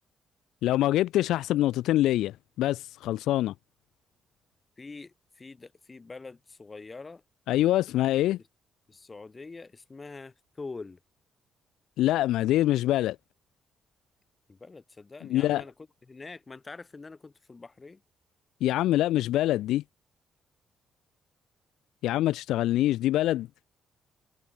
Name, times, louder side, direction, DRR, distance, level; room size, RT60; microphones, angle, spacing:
voice 1, 0.6-3.5 7.5-8.4 12.0-13.2 15.2-15.6 18.6-19.8 22.0-23.5, left 14 dB, 85° left, 0.7 m, -25 dB
voice 2, 4.8-7.2 8.9-11.0 14.5-15.7 16.1-18.0, left 3 dB, 25° left, 3.1 m, -44 dB
open air
cardioid pair, 90°, 0 cm